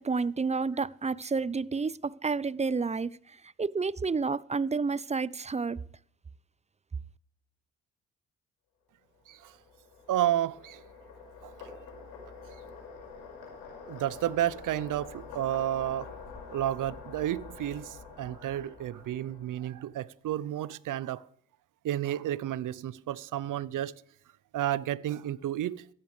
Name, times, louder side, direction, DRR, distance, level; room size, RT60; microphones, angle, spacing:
voice 1, 0.0-3.1 3.6-5.8, right 4 dB, 20° right, 0.5 m, -30 dB
sound 1, 9.2-19.9, left 5 dB, 80° left, 5.3 m, -47 dB
voice 2, 10.1-10.8 11.4-11.7 13.9-16.1 16.5-21.3 21.8-23.9 24.5-25.9, right 12 dB, 60° right, 0.7 m, -31 dB
15.0 x 15.0 x 3.2 m
hypercardioid pair, 40°, 36 cm